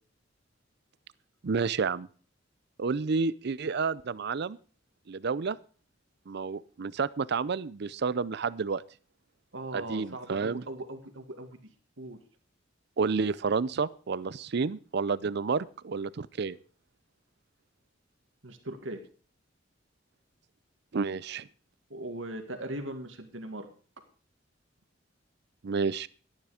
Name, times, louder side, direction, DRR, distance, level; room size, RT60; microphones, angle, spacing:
voice 1, 1.4-2.1 2.8-4.6 5.1-5.6 6.3-8.8 9.7-10.6 13.0-16.6 20.9-21.5 25.6-26.1, right 5 dB, 60° right, 19 dB, 0.5 m, -30 dB
voice 2, 9.5-11.6 12.0-12.2 18.4-19.0 21.9-23.7, right 1 dB, 75° right, 6 dB, 2.1 m, -39 dB
12.0 x 10.5 x 5.0 m, 0.40 s
head